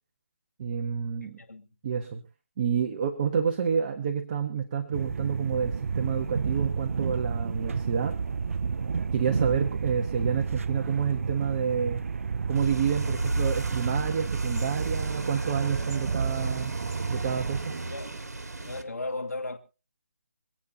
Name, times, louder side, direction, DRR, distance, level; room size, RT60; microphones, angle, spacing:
voice 1, 0.6-1.4 1.8-2.2 2.6-8.1 9.1-12.0 12.5-16.8 17.1-17.8, right 7 dB, 30° right, 1.3 m, -29 dB
voice 2, 1.2-1.7 17.9-18.2 18.6-19.6, left 2 dB, 85° left, 2.5 m, -36 dB
sound 1, 4.9-17.6, right 5 dB, 55° right, 0.6 m, -31 dB
sound 2, 12.5-18.8, right 2 dB, 80° right, 1.8 m, -33 dB
26.0 x 8.8 x 2.9 m
figure-of-eight pair, 160°, 9 cm